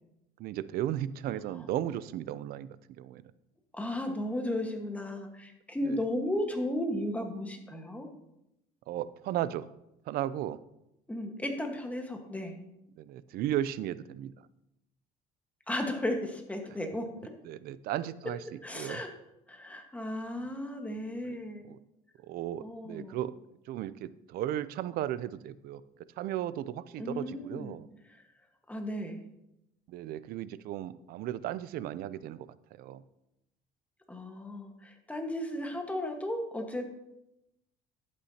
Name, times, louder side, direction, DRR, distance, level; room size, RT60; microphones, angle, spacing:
voice 1, 0.4-3.2 5.8-6.0 8.9-9.7 10.1-10.6 13.0-14.3 17.4-19.0 21.3-21.4 21.7-21.8 22.3-23.3 23.7-25.8 26.2-27.9 29.9-33.0, right 12 dB, 70° right, 17 dB, 0.5 m, -35 dB
voice 2, 3.7-8.1 11.1-12.5 15.7-17.3 18.6-19.1 19.5-21.6 22.6-23.2 27.0-27.8 28.1-28.2 28.7-29.2 34.1-36.9, left 1 dB, 10° left, 3 dB, 1.5 m, -35 dB
11.5 x 8.6 x 2.9 m, 0.87 s
cardioid pair, 105°, 16 cm